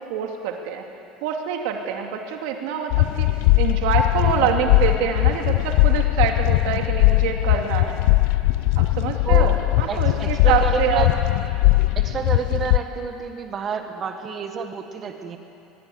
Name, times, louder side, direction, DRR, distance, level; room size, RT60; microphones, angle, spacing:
voice 1, 0.1-0.8 1.2-3.3 3.6-8.0 8.8-11.1, right 8 dB, 75° right, 3 dB, 2.4 m, -25 dB
sound 1, 2.9-12.8, left 19 dB, 65° left, 0.5 m, -19 dB
voice 2, 9.9-11.1 11.9-15.4, right 6 dB, 25° right, 5 dB, 1.6 m, -29 dB
22.5 x 22.5 x 9.5 m, 2.7 s
cardioid pair, 160°, 0 cm